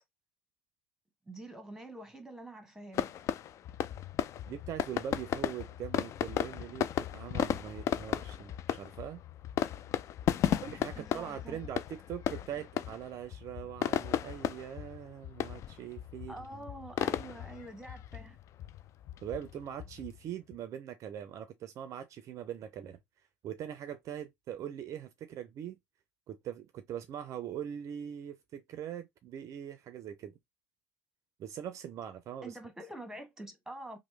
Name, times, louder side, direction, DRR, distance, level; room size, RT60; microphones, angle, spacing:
voice 1, 1.3-3.1 10.4-10.6 10.9-11.6 16.3-18.4 32.4-34.0, right 1 dB, 5° right, 1.0 m, -46 dB
sound 1, 2.9-20.6, left 10 dB, 45° left, 0.3 m, -35 dB
voice 2, 4.5-9.2 10.6-16.6 17.2-17.3 19.2-23.0 23.4-25.8 26.3-30.4 31.4-32.6, right 10 dB, 50° right, 0.4 m, -42 dB
3.0 x 2.0 x 3.1 m
supercardioid pair, 85°, 7 cm